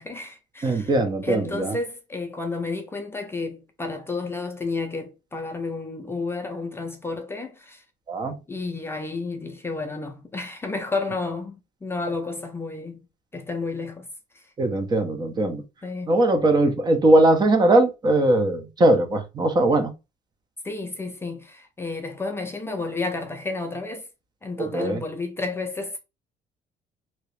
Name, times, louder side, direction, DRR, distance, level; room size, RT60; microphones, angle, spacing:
voice 1, 0.0-1.0 1.2-7.8 8.5-13.1 13.3-14.1 14.3-14.4 15.8-16.1 20.6-24.1 24.4-26.0, left 3 dB, 15° left, 0.5 m, -31 dB
voice 2, 0.6-1.8 8.1-8.3 14.6-15.6 16.1-19.9 24.6-25.0, right 2 dB, 25° right, 0.6 m, -20 dB
2.8 x 2.8 x 3.2 m
cardioid pair, 130°, 16 cm